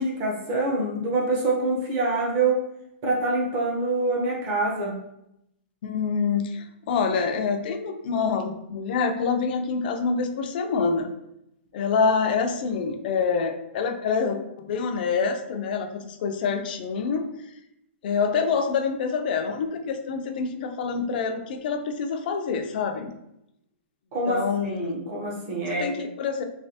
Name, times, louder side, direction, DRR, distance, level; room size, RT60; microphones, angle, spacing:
voice 1, 0.0-2.6 3.0-4.9 24.1-24.4 24.6-25.9, right 2 dB, 30° right, -1 dB, 0.8 m, -25 dB
voice 2, 5.8-11.1 11.7-17.3 18.0-23.1 24.3-25.0 25.7-26.4, left 5 dB, 45° left, 6 dB, 0.4 m, -26 dB
3.2 x 2.7 x 2.7 m, 0.82 s
hypercardioid pair, 165°, 7 cm